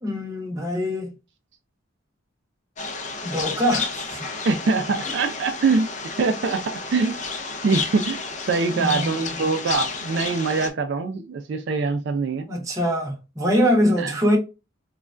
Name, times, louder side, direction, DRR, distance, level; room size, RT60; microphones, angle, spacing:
voice 1, 0.0-1.1 3.2-4.2 8.8-9.3 12.5-14.4, equal, 15° right, 0.7 m, -23 dB
sound 1, 2.8-10.7, left 4 dB, 35° left, 0.4 m, -31 dB
voice 2, 4.4-7.2 7.6-8.2 8.5-12.5 14.0-14.2, right 4 dB, 60° right, 0.3 m, -23 dB
3.2 x 2.2 x 2.4 m
head